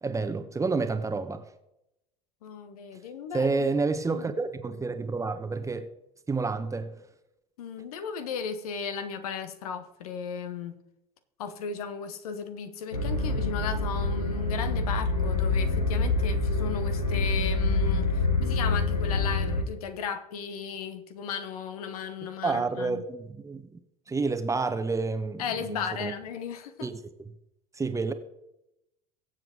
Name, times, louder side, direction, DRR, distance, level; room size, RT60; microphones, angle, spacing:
voice 1, 0.0-1.5 3.3-5.9 6.3-6.9 22.4-23.7 24.1-26.1 26.8-27.0 27.8-28.1, right 4 dB, 15° right, 1.1 m, -29 dB
voice 2, 2.4-3.7 4.1-4.2 7.6-10.7 11.4-23.0 25.4-26.9, left 6 dB, 65° left, 1.3 m, -35 dB
sound 1, 12.9-19.6, left 3 dB, 90° left, 1.5 m, -26 dB
23.0 x 7.7 x 3.8 m
figure-of-eight pair, 70°, 20 cm